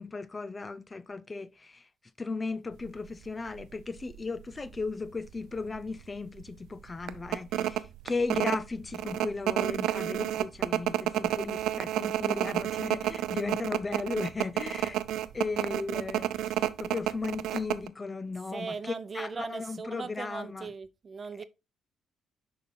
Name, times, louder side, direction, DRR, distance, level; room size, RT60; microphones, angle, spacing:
voice 1, 0.0-1.9 2.2-15.0 15.3-20.7 21.3-21.4, left 3 dB, 25° left, 0.5 m, -36 dB
sound 1, 2.8-3.0 3.6-3.7 4.0-4.9 5.3-5.4 5.7-6.0 6.4-6.5 7.1-17.9, right 12 dB, 85° right, 0.4 m, -30 dB
voice 2, 18.5-21.4, right 5 dB, 40° right, 0.7 m, -39 dB
6.4 x 4.2 x 3.8 m
cardioid pair, 90°, 0 cm